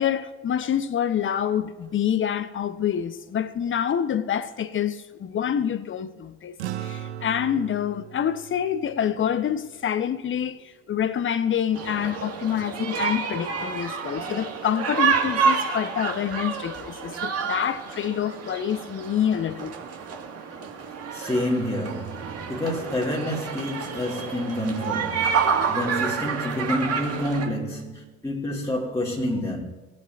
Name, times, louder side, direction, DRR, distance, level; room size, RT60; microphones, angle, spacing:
voice 1, 0.0-19.8, left 9 dB, 35° left, 0.9 m, -27 dB
sound 1, 6.6-11.2, right 11 dB, 75° right, 0.6 m, -39 dB
sound 2, 11.7-27.5, right 6 dB, 45° right, 2.0 m, -29 dB
voice 2, 21.1-29.6, left 1 dB, 10° left, 2.1 m, -28 dB
20.5 x 8.5 x 2.6 m
figure-of-eight pair, 45°, 34 cm